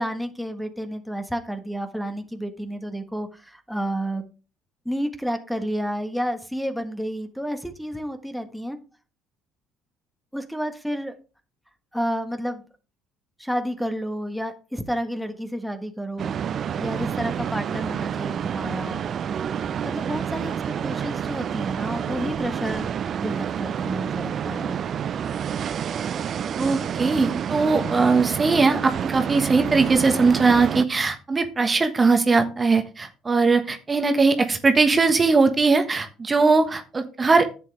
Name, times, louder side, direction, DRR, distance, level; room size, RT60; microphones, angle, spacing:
voice 1, 0.0-4.2 4.8-8.8 10.3-11.1 11.9-12.6 13.4-16.4 16.8-19.0 19.8-20.5 20.8-22.9 23.2-24.7, equal, ahead, 8 dB, 1.5 m, -30 dB
sound 1, 16.2-30.9, right 8 dB, 50° right, 0.5 m, -28 dB
voice 2, 26.6-37.6, right 4 dB, 30° right, 6 dB, 1.3 m, -20 dB
11.0 x 7.6 x 3.3 m, 0.34 s
hypercardioid pair, 60°, 0 cm